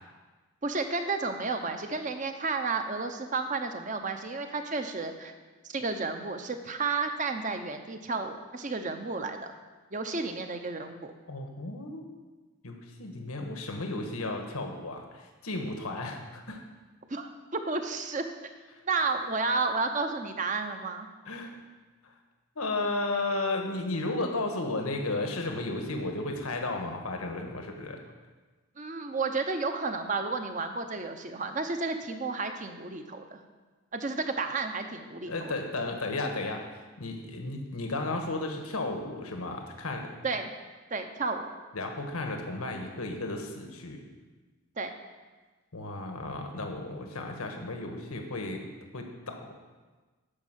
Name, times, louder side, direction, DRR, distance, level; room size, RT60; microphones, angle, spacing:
voice 1, 0.6-5.3 5.6-9.5 9.9-11.1 17.1-18.2 18.8-21.1 28.8-33.4 33.9-35.5 40.2-40.5 40.9-41.5 44.8-44.9, right 4 dB, 35° right, 6 dB, 0.8 m, -32 dB
voice 2, 11.3-12.0 12.6-16.6 21.3-21.6 22.5-28.0 35.3-36.6 37.0-40.1 41.7-44.0 45.7-48.6 48.9-49.5, left 2 dB, 85° left, 3 dB, 1.4 m, -34 dB
12.0 x 5.3 x 7.5 m, 1.3 s
head